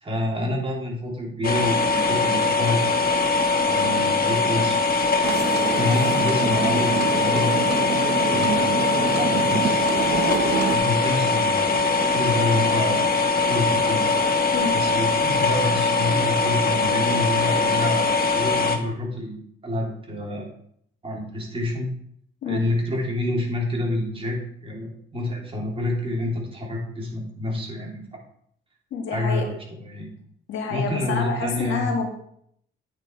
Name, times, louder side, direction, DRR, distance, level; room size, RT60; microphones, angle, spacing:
voice 1, 0.0-3.2 3.7-5.0 5.7-10.1 10.7-13.1 13.5-14.1 14.7-19.4 19.6-20.5 21.0-21.9 22.4-28.2 29.1-30.1 30.7-31.9, left 1 dB, 30° right, -2 dB, 3.1 m, -28 dB
sound 1, 1.4-18.8, left 3 dB, 50° left, 1.2 m, -22 dB
sound 2, 5.2-10.8, right 7 dB, 55° right, 0.7 m, -28 dB
voice 2, 28.9-29.5 30.5-32.1, left 5 dB, 80° left, 2 dB, 1.8 m, -28 dB
9.1 x 5.2 x 4.6 m, 0.69 s
cardioid pair, 90°, 20 cm